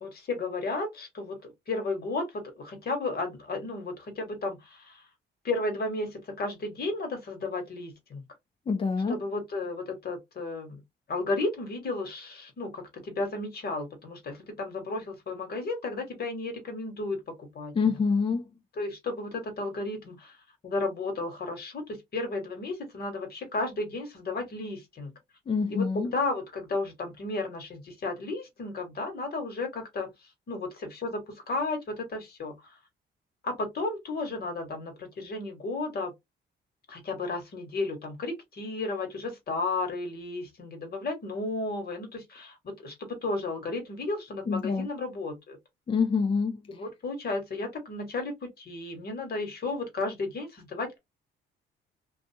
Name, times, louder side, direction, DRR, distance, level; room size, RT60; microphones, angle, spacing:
voice 1, 0.0-5.1 5.4-8.2 9.1-10.8 11.1-17.7 18.8-20.4 20.6-25.1 25.7-32.8 33.4-36.1 36.9-45.6 46.7-51.0, left 3 dB, 50° left, 1.4 m, -33 dB
voice 2, 8.7-9.2 17.8-18.5 25.5-26.1 44.5-44.9 45.9-46.6, left 5 dB, 25° left, 0.3 m, -26 dB
2.5 x 2.4 x 2.7 m
cardioid pair, 90°, 20 cm